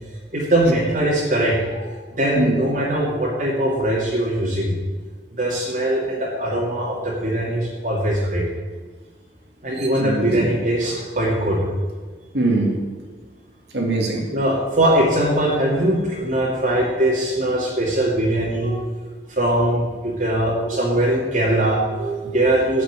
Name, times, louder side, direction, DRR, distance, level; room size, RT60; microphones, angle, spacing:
voice 1, 0.3-4.7 5.3-8.4 9.6-11.6 14.3-18.7 19.3-21.8 22.2-22.8, right 1 dB, 50° right, -5 dB, 2.6 m, -21 dB
voice 2, 9.8-10.4 12.3-12.8 13.7-14.2 18.6-19.0 20.6-20.7 21.9-22.4, right 2 dB, 75° right, 1 dB, 2.5 m, -24 dB
13.0 x 6.2 x 9.0 m, 1.4 s
head